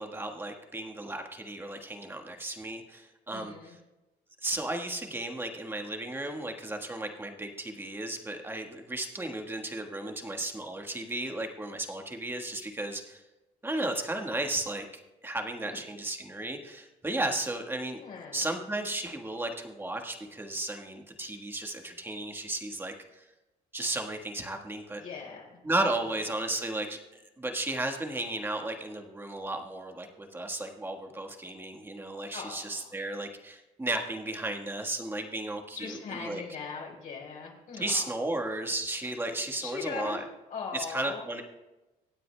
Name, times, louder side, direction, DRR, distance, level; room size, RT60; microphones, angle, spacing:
voice 1, 0.0-3.5 4.4-13.2 13.6-14.8 15.2-18.0 18.3-23.2 23.7-25.0 25.6-27.0 27.4-36.4 37.8-40.2 40.7-41.4, right 2 dB, 15° right, 3 dB, 1.4 m, -34 dB
voice 2, 3.3-3.8 15.6-15.8 18.0-18.4 25.0-25.6 32.3-32.9 35.7-38.1 39.6-40.2 40.5-41.2, left 5 dB, 55° left, -1 dB, 4.5 m, -40 dB
25.0 x 9.1 x 2.2 m, 1.0 s
cardioid pair, 110°, 17 cm